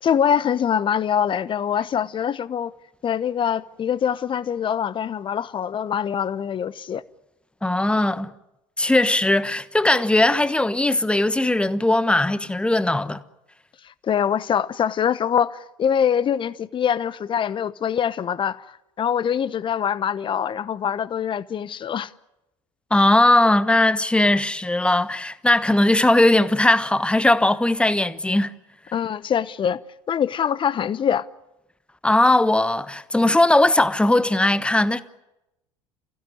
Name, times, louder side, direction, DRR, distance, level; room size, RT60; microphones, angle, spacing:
voice 1, 0.0-2.7 3.0-7.0 13.8-18.6 19.0-22.1 28.9-29.8 30.1-31.2, left 8 dB, 30° left, 0.9 m, -24 dB
voice 2, 7.6-8.3 8.8-13.2 22.9-28.5 32.0-35.0, left 1 dB, 5° left, 1.2 m, -19 dB
29.0 x 16.0 x 9.7 m
figure-of-eight pair, 70°, 16 cm